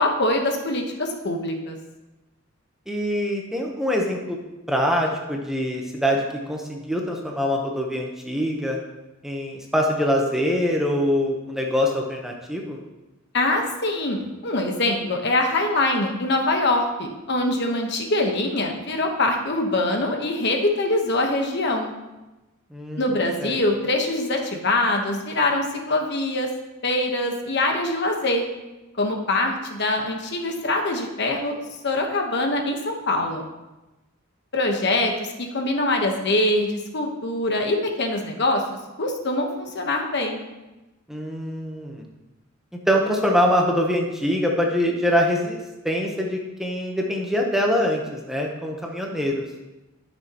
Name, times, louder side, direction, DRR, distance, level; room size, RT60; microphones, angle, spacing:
voice 1, 0.0-1.8 13.3-21.9 23.0-26.5 26.8-28.4 29.0-31.6 31.8-33.4 34.5-35.1 35.4-38.6 39.0-40.4, left 2 dB, 55° left, 3 dB, 1.1 m, -23 dB
voice 2, 2.9-4.4 4.7-8.8 9.2-12.8 22.7-23.6 41.1-42.0 42.9-45.6 45.8-49.4, equal, ahead, 0 dB, 0.8 m, -24 dB
12.0 x 6.4 x 2.9 m, 1.1 s
head